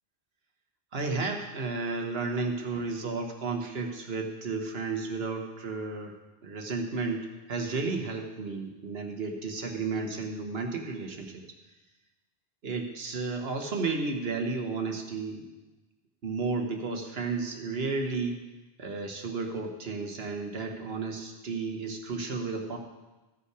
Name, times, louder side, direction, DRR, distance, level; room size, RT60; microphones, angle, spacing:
voice 1, 0.9-6.1 6.4-11.4 12.6-15.5 16.2-18.4 18.8-22.8, right 4 dB, 75° right, 3 dB, 1.4 m, -33 dB
15.0 x 5.6 x 4.8 m, 1.1 s
omnidirectional pair, 1.0 m